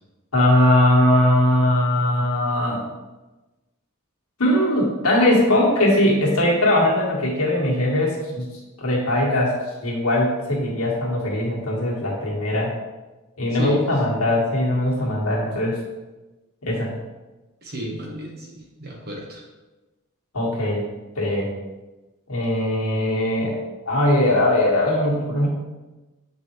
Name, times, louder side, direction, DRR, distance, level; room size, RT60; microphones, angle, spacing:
voice 1, 0.3-2.8 4.4-8.4 8.8-9.6 9.8-12.7 13.4-15.8 16.6-16.9 20.3-20.9 21.2-21.5 22.3-23.6 23.9-25.5, left 1 dB, 80° left, -4 dB, 1.8 m, -20 dB
voice 2, 13.5-13.9 17.6-19.4, equal, 45° right, -1 dB, 1.4 m, -33 dB
7.9 x 4.2 x 3.2 m, 1.1 s
head